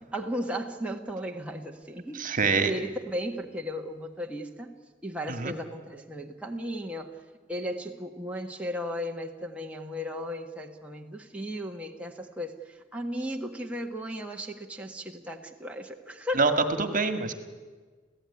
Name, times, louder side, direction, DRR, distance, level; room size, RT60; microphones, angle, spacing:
voice 1, 0.0-2.3 2.6-4.7 5.0-7.1 7.5-16.4, equal, 5° right, 1 dB, 1.5 m, -35 dB
voice 2, 2.1-2.7 5.3-5.5 16.3-16.5 16.8-17.3, right 4 dB, 45° right, 8 dB, 1.9 m, -25 dB
28.5 x 16.0 x 9.8 m, 1.4 s
head